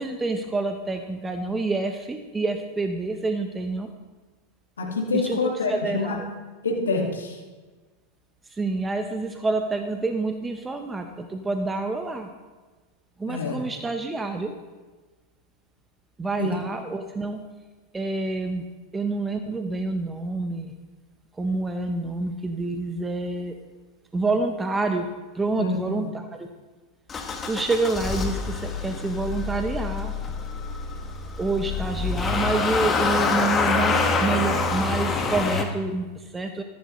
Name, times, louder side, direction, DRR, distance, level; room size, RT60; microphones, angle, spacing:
voice 1, 0.0-3.9 5.1-6.3 8.5-12.3 13.2-14.5 16.2-17.4 17.9-18.6 18.9-20.7 21.4-23.5 24.1-25.1 25.3-26.5 27.4-30.1 31.4-36.6, right 3 dB, 15° right, 5 dB, 0.9 m, -28 dB
voice 2, 4.8-6.2 6.6-7.4 13.3-13.6 16.4-16.5 25.6-26.1, left 3 dB, 90° left, 1 dB, 2.1 m, -26 dB
Motor vehicle (road) / Engine starting, 27.1-35.6, left 4 dB, 25° left, 1.5 m, -26 dB
14.0 x 10.5 x 3.2 m, 1.3 s
hypercardioid pair, 105°, 0 cm